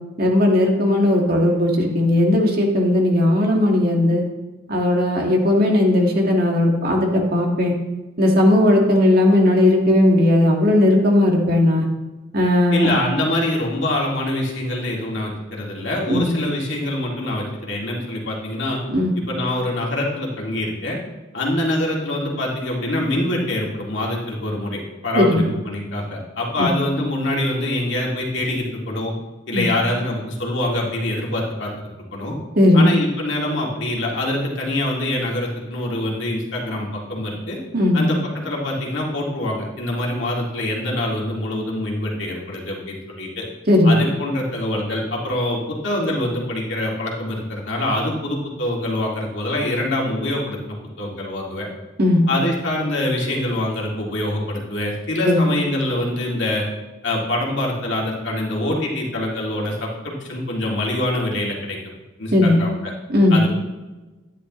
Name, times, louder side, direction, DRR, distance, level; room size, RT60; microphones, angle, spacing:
voice 1, 0.2-4.2 4.7-7.7 8.2-11.9 12.3-12.9 16.1-16.3 18.9-19.1 25.1-25.4 26.6-26.7 29.5-29.7 32.6-32.9 37.7-38.0 43.7-44.0 52.0-52.2 55.2-55.5 62.3-62.6 63.1-63.4, left 1 dB, 45° right, 0 dB, 1.7 m, -17 dB
voice 2, 12.7-18.8 19.2-21.0 21.3-29.1 29.5-32.3 32.7-37.6 37.9-43.4 43.8-51.7 52.3-56.6 57.0-61.8 62.2-62.9 63.3-63.5, left 1 dB, 60° left, -2 dB, 2.3 m, -25 dB
12.0 x 10.0 x 3.1 m, 1.1 s
head